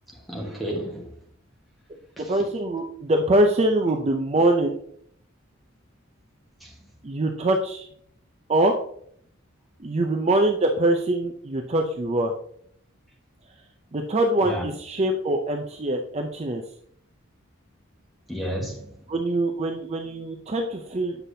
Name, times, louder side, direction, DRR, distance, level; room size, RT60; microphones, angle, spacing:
voice 1, 0.1-1.1 2.2-2.3 6.6-6.7 14.4-14.7 18.3-19.0, equal, ahead, 1.3 m, -32 dB
voice 2, 2.2-4.8 7.0-7.9 8.5-8.7 9.8-12.3 13.9-16.6 19.1-21.2, right 1 dB, 30° right, 0.5 m, -23 dB
8.2 x 5.9 x 2.7 m
head